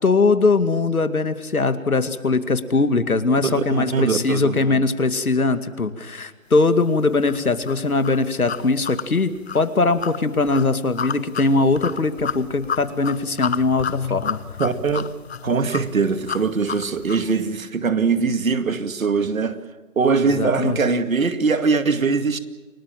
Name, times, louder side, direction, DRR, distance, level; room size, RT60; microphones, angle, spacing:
voice 1, 0.0-14.4 20.2-20.8, left 3 dB, 90° left, 2.3 m, -21 dB
voice 2, 3.4-4.8 14.6-15.1 15.4-19.6 20.0-22.4, right 4 dB, 70° right, 2.3 m, -22 dB
sound 1, 7.3-17.3, left 7 dB, 45° left, 0.9 m, -31 dB
29.0 x 19.0 x 7.5 m
figure-of-eight pair, 155°, 42 cm